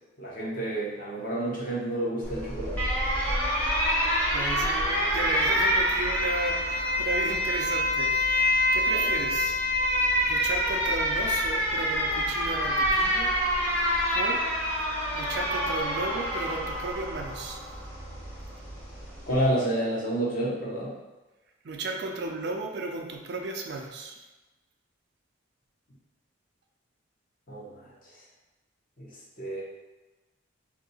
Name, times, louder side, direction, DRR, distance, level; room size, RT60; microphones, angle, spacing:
voice 1, 0.2-2.8 8.9-9.1 19.3-20.9 27.5-27.9 29.0-29.1 29.4-29.6, right 1 dB, 45° left, -6 dB, 0.9 m, -29 dB
Alarm, 2.2-19.5, equal, 10° left, 0.7 m, -27 dB
voice 2, 4.3-9.6 9.9-13.3 14.1-14.4 15.1-17.6 21.6-24.2, right 3 dB, 55° right, 2 dB, 0.4 m, -34 dB
2.8 x 2.7 x 4.1 m, 1.1 s
head